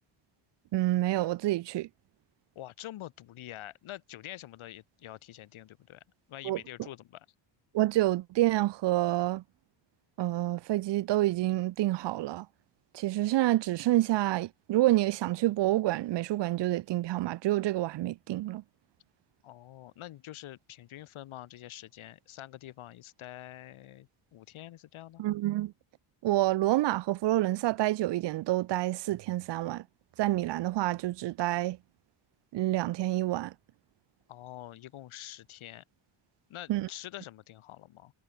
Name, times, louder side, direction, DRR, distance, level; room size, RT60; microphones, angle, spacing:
voice 1, 0.7-1.9 6.4-6.6 7.7-9.4 10.2-12.5 12.9-18.6 25.2-25.7 26.2-29.8 30.2-31.8 32.5-33.5 36.7-36.9, right 16 dB, 60° right, 0.7 m, -28 dB
voice 2, 2.5-6.0 6.3-7.3 19.4-25.2 34.3-35.8 36.5-38.1, left 14 dB, 75° left, 4.4 m, -46 dB
cardioid pair, 120°, 49 cm